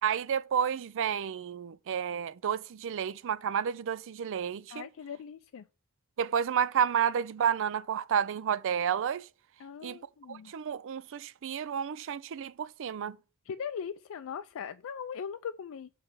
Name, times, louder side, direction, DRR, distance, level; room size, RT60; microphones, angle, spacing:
voice 1, 0.0-4.8 6.2-9.3 9.8-10.0 10.3-13.2, right 8 dB, 60° right, 0.4 m, -31 dB
voice 2, 4.7-5.7 9.6-10.5 13.4-15.9, left 7 dB, 65° left, 0.4 m, -40 dB
7.2 x 3.2 x 5.8 m
head